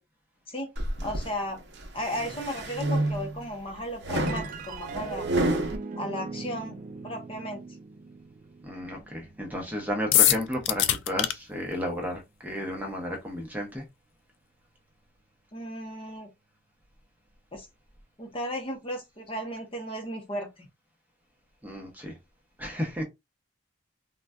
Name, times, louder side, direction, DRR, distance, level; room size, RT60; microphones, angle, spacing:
sound 1, 0.8-1.3 1.8-3.5 4.0-5.8, right 1 dB, 55° right, 0.7 m, -29 dB
voice 1, 1.0-1.6 1.9-5.3 6.0-7.6 15.5-16.3 17.5-17.7 18.2-20.7, equal, 25° left, 0.7 m, -35 dB
sound 2, 4.3-10.9, right 3 dB, 40° right, 0.3 m, -39 dB
voice 2, 8.6-13.8 21.6-22.1 22.6-23.0, equal, 10° right, 0.7 m, -33 dB
sound 3, 10.1-11.3, left 12 dB, 60° left, 0.3 m, -21 dB
3.8 x 2.2 x 2.2 m
head